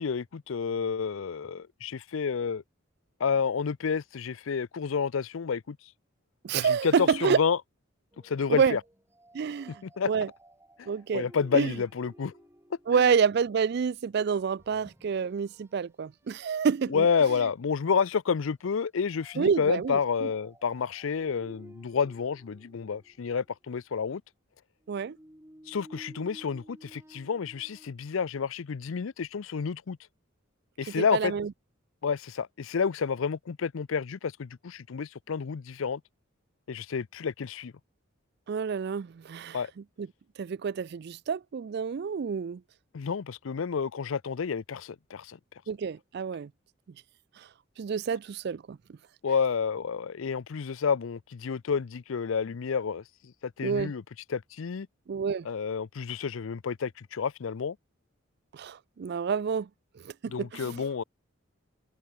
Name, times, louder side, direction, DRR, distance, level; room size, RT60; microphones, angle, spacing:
voice 1, 0.0-2.6 3.2-5.8 6.6-7.6 8.2-8.8 9.8-10.1 10.8-12.3 12.9-13.1 16.9-24.2 25.7-30.0 30.8-31.3 32.0-36.0 36.7-37.7 39.5-39.7 42.9-45.4 49.2-54.0 54.3-54.9 55.4-57.8 60.3-61.0, left 6 dB, 75° left, 0.5 m, -30 dB
voice 2, 6.4-7.4 8.5-8.8 9.3-10.3 10.9-11.3 11.5-11.7 12.9-17.1 19.4-20.3 24.9-25.2 31.0-31.5 38.5-39.6 40.0-40.1 40.4-42.6 45.7-46.5 47.8-48.8 53.6-53.9 55.1-55.5 58.5-59.7 60.0-60.8, right 6 dB, 50° right, 0.3 m, -28 dB
sound 1, 8.1-13.4 14.5-15.8 16.2-16.4 17.0-17.5 19.1-23.5 24.8-27.9, equal, 10° right, 2.2 m, -55 dB
open air
head